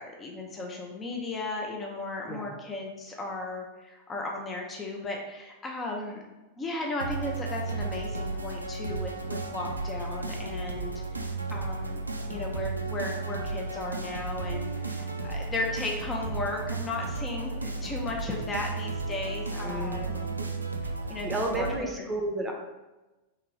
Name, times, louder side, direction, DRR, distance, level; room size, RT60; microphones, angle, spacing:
voice 1, 0.0-6.2 6.6-12.0 12.3-20.4 21.1-21.7 22.0-22.1, left 2 dB, 20° left, 0 dB, 0.6 m, -35 dB
sound 1, 7.0-21.8, right 3 dB, 80° right, 0.4 m, -34 dB
voice 2, 19.6-20.5 21.2-22.5, right 1 dB, 10° right, 1 dB, 0.8 m, -32 dB
3.5 x 2.9 x 4.7 m, 1.1 s
figure-of-eight pair, 90°, 0 cm